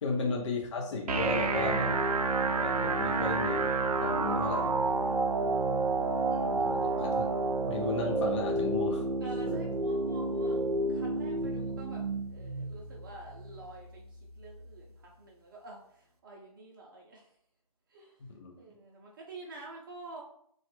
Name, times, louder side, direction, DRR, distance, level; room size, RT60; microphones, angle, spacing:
voice 1, 0.0-2.0 2.5-3.7 4.0-4.8 6.3-7.3 7.7-9.1 9.5-9.6 18.2-18.6, left 3 dB, 50° left, 1 dB, 0.5 m, -35 dB
sound 1, 1.1-15.0, right 3 dB, 90° right, 0.4 m, -30 dB
voice 2, 5.4-5.8 6.6-7.0 9.2-17.4 17.9-18.2 18.6-20.2, right 2 dB, 35° right, -2 dB, 0.5 m, -48 dB
3.2 x 2.3 x 3.0 m, 0.67 s
hypercardioid pair, 150°, 19 cm